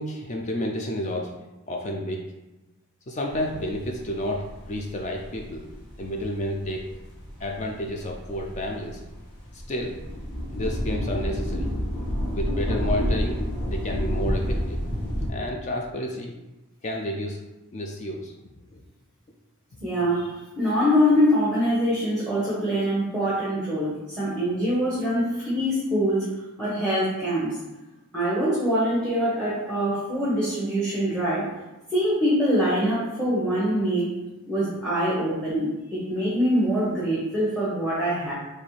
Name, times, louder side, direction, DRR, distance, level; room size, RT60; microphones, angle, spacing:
voice 1, 0.0-1.3 1.7-2.2 3.1-5.7 6.0-6.8 7.4-9.0 9.5-10.0 10.5-11.7 12.3-14.8 15.3-16.3 16.8-17.5 17.7-18.3 18.7-18.8, left 1 dB, 35° left, 1 dB, 0.3 m, -30 dB
sound 1, 3.3-15.3, equal, 80° left, 1.5 m, -30 dB
voice 2, 19.8-26.2 26.6-27.5 28.1-31.4 31.9-34.1 34.5-38.3, equal, 5° left, -10 dB, 1.0 m, -24 dB
4.2 x 3.1 x 3.2 m, 1.0 s
head